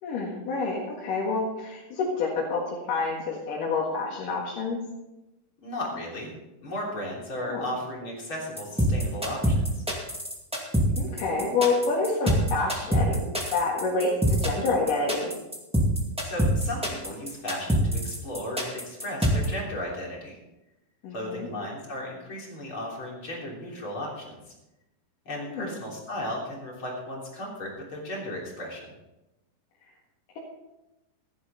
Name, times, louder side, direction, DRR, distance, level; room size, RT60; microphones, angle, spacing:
voice 1, 0.0-4.8 7.4-7.6 10.9-15.3 21.0-21.5 25.5-25.8, left 3 dB, 60° left, -4 dB, 3.2 m, -28 dB
voice 2, 5.6-6.4 6.6-9.8 16.2-20.4 21.1-24.4 25.3-28.9, left 1 dB, 35° left, -3 dB, 3.7 m, -35 dB
sound 1, 8.6-19.5, equal, 5° right, 0.9 m, -25 dB
15.5 x 11.5 x 4.1 m, 0.97 s
omnidirectional pair, 4.5 m